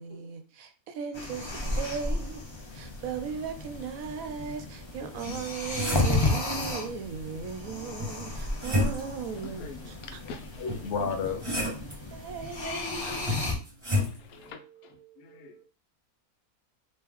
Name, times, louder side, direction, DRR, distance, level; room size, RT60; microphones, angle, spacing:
voice 1, 0.0-2.4 2.7-9.7 12.1-13.3 14.3-14.5 15.0-15.6, right 6 dB, 75° right, 1.0 m, -37 dB
sound 1, 1.1-13.5, left 2 dB, 30° left, 0.5 m, -33 dB
sound 2, 5.2-6.3 8.0-9.2 10.7-12.0 13.3-14.2, left 1 dB, 20° right, 1.5 m, -31 dB
voice 2, 8.1-11.1 11.4-11.5 13.0-13.6 14.0-15.6, left 6 dB, 90° left, 1.1 m, -48 dB
voice 3, 10.6-11.5 12.6-13.3, left 5 dB, 60° left, 0.9 m, -33 dB
3.0 x 2.9 x 3.6 m
omnidirectional pair, 1.5 m